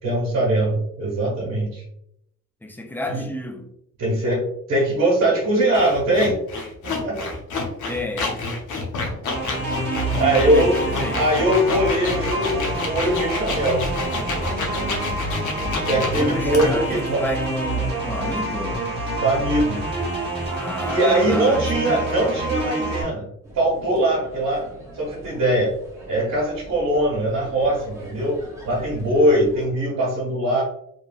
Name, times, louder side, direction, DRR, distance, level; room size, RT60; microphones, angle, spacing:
voice 1, 0.0-1.8 3.1-3.2 4.0-6.4 6.8-7.3 10.1-10.8 11.1-13.9 15.9-17.2 19.2-19.8 20.8-24.6 24.9-25.7 26.1-28.4 28.6-30.6, right 1 dB, 70° right, 1.3 m, -21 dB
voice 2, 2.6-3.7 7.9-8.3 10.4-11.2 16.1-18.9 20.4-22.1, left 1 dB, 5° left, 0.4 m, -31 dB
sound 1, 5.7-16.9, left 3 dB, 85° left, 0.8 m, -29 dB
sound 2, 9.3-23.0, right 1 dB, 35° right, 1.1 m, -27 dB
sound 3, 23.4-29.6, right 1 dB, 10° right, 0.9 m, -43 dB
2.9 x 2.6 x 2.3 m
cardioid pair, 90°, 30 cm